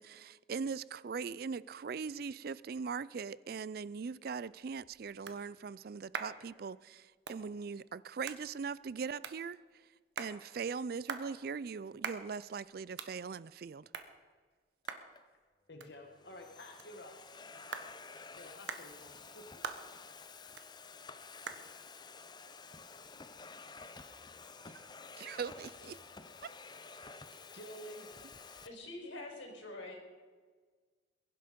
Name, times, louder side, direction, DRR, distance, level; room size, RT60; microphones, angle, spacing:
voice 1, 0.0-9.6 10.2-13.9 24.7-24.9 25.2-26.0, right 5 dB, 50° right, 0.4 m, -40 dB
sound 1, 4.4-23.7, right 5 dB, 70° right, 1.3 m, -49 dB
Domestic sounds home sounds, 14.8-15.2 16.0-28.7, left 4 dB, 20° left, 0.6 m, -51 dB
voice 2, 15.7-17.1 18.3-19.4 26.2-26.3 27.5-28.1, equal, 60° left, 1.5 m, -50 dB
voice 3, 28.6-30.0, left 2 dB, 90° left, 4.9 m, -45 dB
22.0 x 11.5 x 5.2 m
head